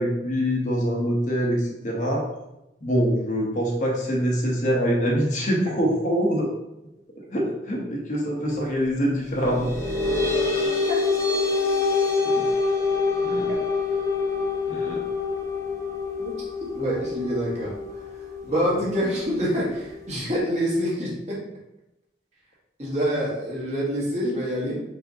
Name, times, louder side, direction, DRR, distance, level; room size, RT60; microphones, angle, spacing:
voice 1, 0.0-2.3 2.8-6.5 7.3-9.7 12.2-12.4 13.2-13.5 14.7-15.0, equal, 45° left, -2 dB, 0.9 m, -24 dB
sound 1, 9.4-20.4, left 4 dB, 15° left, 0.8 m, -26 dB
voice 2, 16.7-17.7 18.4-21.4 22.8-24.8, equal, 40° right, -5 dB, 1.3 m, -26 dB
4.8 x 3.5 x 2.7 m, 0.89 s
head